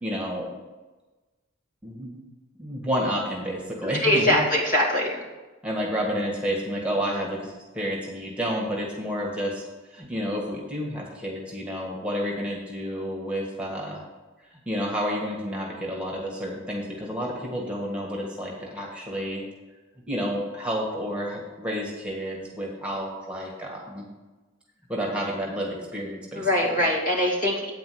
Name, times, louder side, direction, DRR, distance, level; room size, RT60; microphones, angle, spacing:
voice 1, 0.0-0.6 1.8-2.2 2.6-4.4 5.6-9.6 9.9-14.0 14.5-19.4 20.1-24.0 24.9-26.8, equal, 5° right, -2 dB, 1.6 m, -30 dB
voice 2, 3.8-5.2 26.3-27.7, left 1 dB, 45° left, -3 dB, 2.4 m, -23 dB
8.7 x 5.0 x 7.7 m, 1.2 s
head